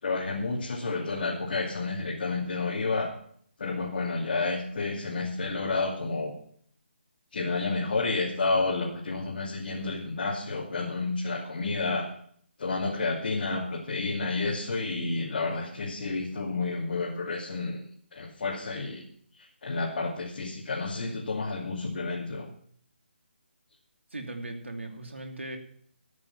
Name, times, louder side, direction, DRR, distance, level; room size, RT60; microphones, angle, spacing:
voice 1, 0.0-3.1 3.6-6.3 7.3-12.1 12.6-17.8 18.1-19.0 19.4-22.5, left 3 dB, 55° left, -4 dB, 2.6 m, -30 dB
voice 2, 24.1-25.6, right 2 dB, 85° right, 4 dB, 2.9 m, -38 dB
14.0 x 9.7 x 5.8 m, 0.62 s
figure-of-eight pair, 150°, 6 cm